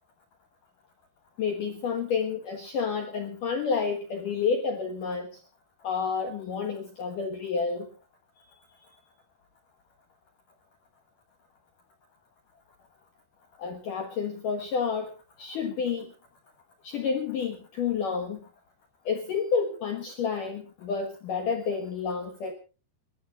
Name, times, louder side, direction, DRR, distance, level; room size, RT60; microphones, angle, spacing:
voice 1, 1.4-5.3 5.8-7.9 13.6-15.1 15.4-16.1 16.8-18.4 19.1-22.5, left 5 dB, 70° left, 4 dB, 2.0 m, -30 dB
29.0 x 13.5 x 2.4 m, 0.34 s
omnidirectional pair, 5.9 m